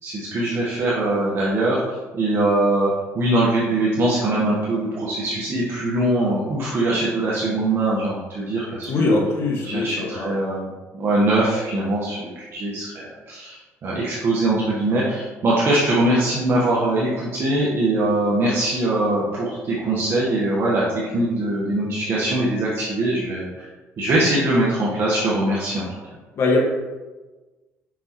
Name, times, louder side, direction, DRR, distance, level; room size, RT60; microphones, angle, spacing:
voice 1, 0.0-9.1 9.6-20.8 21.1-23.6 24.0-25.9, right 1 dB, 45° right, -6 dB, 1.3 m, -22 dB
voice 2, 8.9-10.4 26.4-26.6, left 2 dB, 55° left, -2 dB, 1.7 m, -21 dB
6.2 x 5.5 x 3.1 m, 1.2 s
cardioid pair, 110°, 6 cm